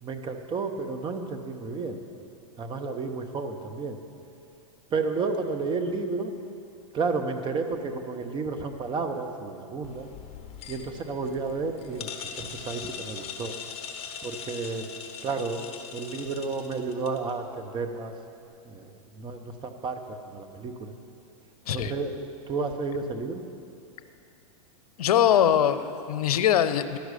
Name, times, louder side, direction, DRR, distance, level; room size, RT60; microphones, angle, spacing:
voice 1, 0.0-2.0 2.6-4.0 4.9-6.4 6.9-10.1 10.7-13.5 14.2-14.9 15.2-15.6 15.9-18.1 18.6-20.9 21.7-23.4, right 4 dB, 25° right, 6 dB, 0.9 m, -32 dB
sound 1, 9.8-17.3, left 7 dB, 30° left, 1.1 m, -41 dB
voice 2, 25.0-27.0, left 10 dB, 80° left, 12 dB, 0.6 m, -22 dB
11.5 x 6.1 x 8.3 m, 2.5 s
hypercardioid pair, 120°, 19 cm